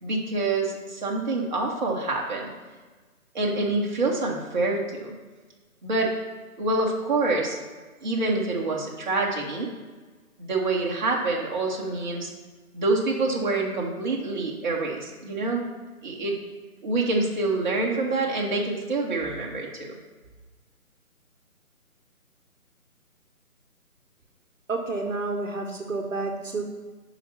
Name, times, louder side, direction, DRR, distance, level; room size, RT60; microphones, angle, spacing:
voice 1, 0.0-2.5 3.3-5.1 5.8-6.1 6.6-7.6 8.0-9.7 10.4-12.3 12.7-15.6 16.0-16.4 16.8-20.0, right 2 dB, 30° right, -3 dB, 1.1 m, -26 dB
voice 2, 24.7-26.6, right 3 dB, 60° right, 3 dB, 1.1 m, -29 dB
5.7 x 5.0 x 5.6 m, 1.3 s
figure-of-eight pair, 165°, 44 cm